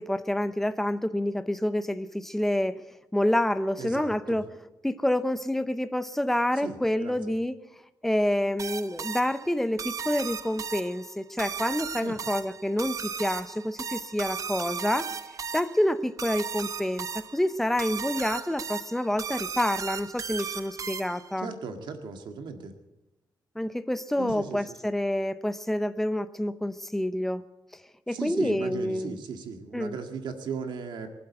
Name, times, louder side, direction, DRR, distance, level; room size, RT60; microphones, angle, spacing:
voice 1, 0.0-2.8 3.1-4.5 4.8-7.6 8.0-15.1 15.5-21.5 23.6-27.4 28.1-29.2 29.7-30.0, left 1 dB, 5° left, 12 dB, 0.7 m, -28 dB
voice 2, 3.8-4.4 6.6-7.2 12.0-12.2 21.4-22.7 24.2-24.6 28.1-31.1, right 5 dB, 90° right, 5 dB, 1.8 m, -37 dB
sound 1, 8.6-21.4, right 6 dB, 45° right, 0.8 m, -36 dB
23.0 x 8.0 x 7.9 m, 1.0 s
wide cardioid pair, 130°, 8 cm